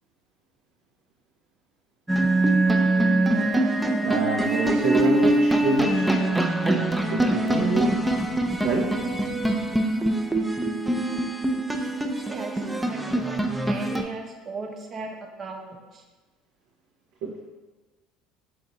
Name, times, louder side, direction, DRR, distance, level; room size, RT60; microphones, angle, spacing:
sound 1, 2.1-14.0, right 1 dB, 5° right, 0.4 m, -23 dB
voice 1, 4.0-6.1 7.1-7.9 8.6-9.0 17.2-17.3, right 4 dB, 70° right, -1 dB, 0.5 m, -26 dB
voice 2, 12.3-16.0, right 3 dB, 40° right, 2 dB, 0.7 m, -37 dB
4.3 x 2.6 x 3.9 m, 1.3 s
hypercardioid pair, 70°, 0 cm